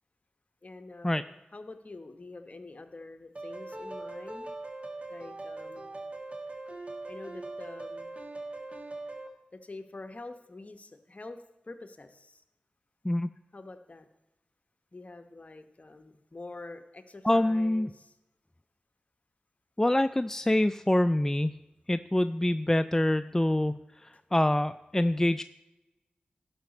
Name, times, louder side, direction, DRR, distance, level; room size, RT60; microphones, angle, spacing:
voice 1, 0.6-4.5 5.1-6.0 7.1-8.1 9.5-11.4 11.6-12.4 13.5-14.1 14.9-18.1, left 2 dB, 45° left, 8 dB, 1.0 m, -46 dB
sound 1, 3.4-9.3, right 2 dB, 40° right, 1.5 m, -41 dB
voice 2, 17.2-17.9 19.8-21.6 21.9-25.4, left 1 dB, 15° left, 12 dB, 0.3 m, -26 dB
12.0 x 5.8 x 5.3 m, 0.97 s
cardioid pair, 40°, 3 cm